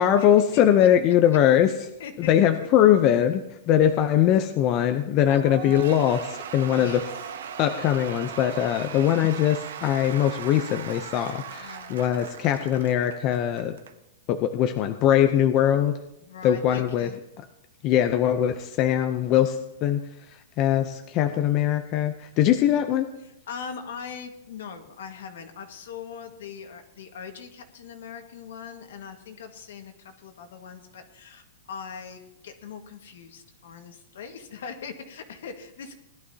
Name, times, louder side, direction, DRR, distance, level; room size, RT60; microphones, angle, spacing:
voice 1, 0.0-1.7 2.2-3.4 3.7-7.0 7.6-13.8 14.3-15.9 16.4-17.1 17.8-20.0 20.6-23.1, left 10 dB, 30° left, 7 dB, 0.6 m, -21 dB
voice 2, 0.5-0.9 2.0-2.7 6.8-7.3 11.6-12.0 16.2-17.2 23.2-35.9, left 6 dB, 70° left, 5 dB, 1.7 m, -41 dB
Cheering / Applause / Crowd, 5.3-13.9, right 8 dB, 80° right, 1.0 m, -38 dB
19.5 x 12.0 x 2.8 m, 0.86 s
hypercardioid pair, 155°, 0 cm